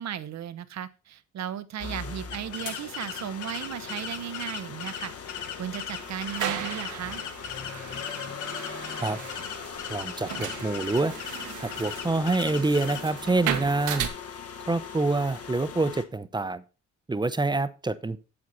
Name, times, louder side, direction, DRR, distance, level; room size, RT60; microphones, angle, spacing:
voice 1, 0.0-5.1 5.6-7.2, right 10 dB, 60° right, 14 dB, 0.9 m, -35 dB
sound 1, 1.8-16.0, left 6 dB, 50° left, 1.5 m, -40 dB
sound 2, 2.3-13.0, left 8 dB, 75° left, 1.4 m, -39 dB
sound 3, 5.9-14.1, right 10 dB, 85° right, 1.5 m, -36 dB
voice 2, 9.9-11.1 11.6-14.1 14.7-16.6 17.1-18.2, right 3 dB, 15° right, 14 dB, 0.8 m, -26 dB
8.3 x 7.9 x 4.1 m, 0.32 s
cardioid pair, 90°, 30 cm